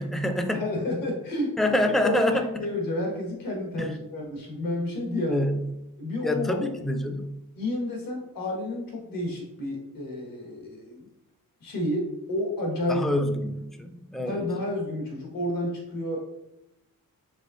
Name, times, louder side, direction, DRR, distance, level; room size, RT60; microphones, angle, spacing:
voice 1, 0.0-0.6 1.6-2.5 3.8-4.0 5.3-5.7 6.2-7.4 12.9-14.4, left 1 dB, ahead, 6 dB, 0.3 m, -26 dB
voice 2, 0.5-1.5 2.0-5.4 6.0-6.6 7.6-11.1 11.6-13.0 14.2-16.3, left 1 dB, 75° left, 0 dB, 1.5 m, -30 dB
5.3 x 3.6 x 2.5 m, 0.90 s
wide cardioid pair, 130°, 35 cm